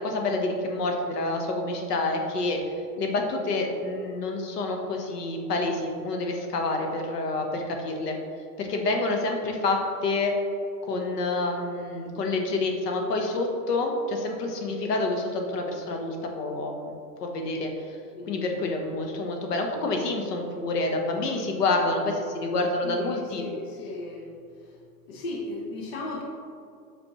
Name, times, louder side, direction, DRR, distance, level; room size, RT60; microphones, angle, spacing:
voice 1, 0.0-2.6 3.0-8.2 8.6-10.3 10.8-17.7 18.3-23.4, left 2 dB, 70° left, 3 dB, 1.2 m, -28 dB
voice 2, 18.1-18.5 22.8-24.3 25.1-26.2, left 2 dB, 40° left, -1 dB, 0.7 m, -36 dB
7.1 x 5.2 x 3.0 m, 2.5 s
supercardioid pair, 170°, 49 cm